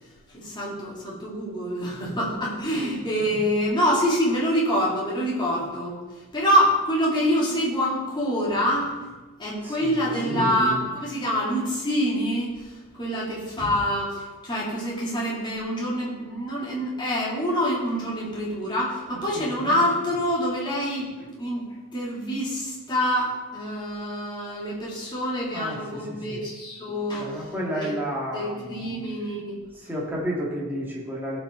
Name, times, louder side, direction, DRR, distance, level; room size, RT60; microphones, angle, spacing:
voice 1, 0.3-6.0 6.3-9.0 9.4-12.5 12.9-21.7 21.9-27.4 27.7-28.0 28.3-29.5, equal, 20° left, -6 dB, 3.1 m, -26 dB
voice 2, 9.6-10.6 19.4-19.6 25.5-26.0 26.3-26.4 27.1-28.8 29.9-31.4, equal, 10° right, -5 dB, 2.3 m, -31 dB
16.5 x 6.1 x 4.0 m, 1.2 s
head